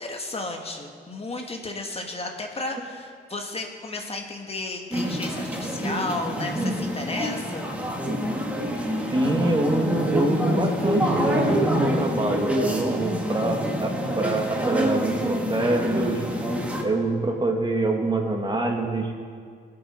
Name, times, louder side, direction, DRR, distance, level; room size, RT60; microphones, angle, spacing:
voice 1, 0.0-7.7, left 2 dB, 30° left, 3 dB, 1.6 m, -33 dB
sound 1, 4.9-16.8, equal, 5° right, 2.2 m, -26 dB
voice 2, 9.1-16.2 16.8-19.1, right 2 dB, 25° right, 2 dB, 2.0 m, -25 dB
16.5 x 8.0 x 4.4 m, 2.1 s
supercardioid pair, 65°, 20 cm